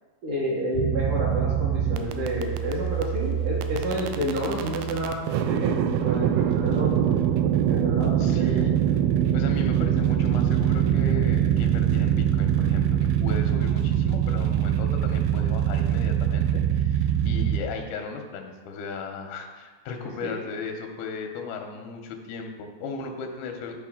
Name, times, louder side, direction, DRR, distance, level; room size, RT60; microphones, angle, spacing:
voice 1, 0.2-7.0 7.7-8.7 20.2-20.3, equal, 65° right, -6 dB, 2.4 m, -29 dB
sound 1, 0.7-17.6, right 10 dB, 85° right, 2.3 m, -24 dB
voice 2, 8.2-8.7 9.3-23.8, left 4 dB, 90° left, 4 dB, 2.6 m, -36 dB
11.0 x 4.5 x 3.6 m, 1.3 s
omnidirectional pair, 4.4 m